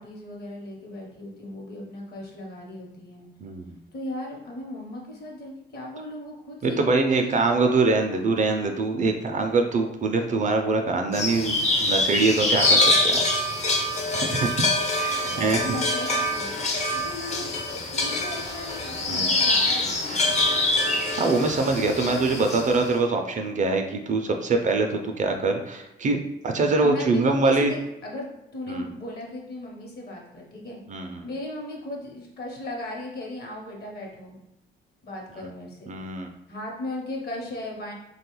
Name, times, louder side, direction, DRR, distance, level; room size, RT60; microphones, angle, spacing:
voice 1, 0.0-3.3 3.9-7.8 15.2-20.8 26.8-30.8 31.2-34.4 35.0-35.9 36.5-37.9, left 1 dB, 55° left, -1 dB, 1.0 m, -37 dB
voice 2, 3.4-3.8 6.6-13.2 14.1-14.6 15.0-15.6 19.1-19.3 21.2-27.7 28.7-28.9 30.9-31.2 35.4-35.5 35.9-36.3, right 3 dB, 40° right, 4 dB, 0.4 m, -24 dB
sound 1, 11.1-22.8, left 2 dB, 35° left, 0.5 m, -24 dB
3.2 x 2.3 x 2.9 m, 0.89 s
cardioid pair, 90°, 20 cm